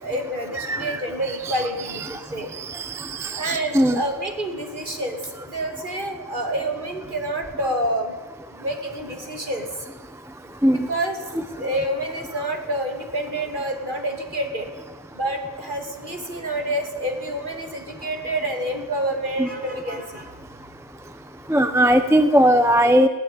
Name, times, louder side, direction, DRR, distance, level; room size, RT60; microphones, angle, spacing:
voice 1, 0.0-2.5 3.4-5.2 5.5-8.1 8.6-9.7 10.7-11.2 11.5-14.7 15.1-20.4, right 1 dB, 40° right, 4 dB, 3.1 m, -28 dB
voice 2, 0.6-1.0 2.6-4.0 10.6-10.9 19.4-19.5 21.5-23.1, equal, ahead, 10 dB, 0.9 m, -19 dB
20.5 x 16.5 x 9.3 m, 1.2 s
omnidirectional pair, 1.3 m